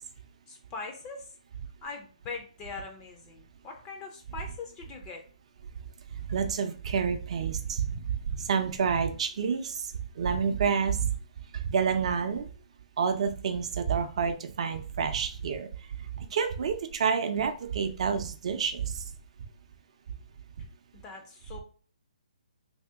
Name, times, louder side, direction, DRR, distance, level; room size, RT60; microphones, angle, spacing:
voice 1, 0.5-1.3 1.8-5.2 21.0-21.6, left 4 dB, 20° left, 3 dB, 0.4 m, -41 dB
voice 2, 6.3-11.1 11.6-12.5 13.0-15.7 16.2-19.0, right 6 dB, 50° right, 7 dB, 0.5 m, -29 dB
2.9 x 2.7 x 3.4 m, 0.40 s
hypercardioid pair, 155°, 4 cm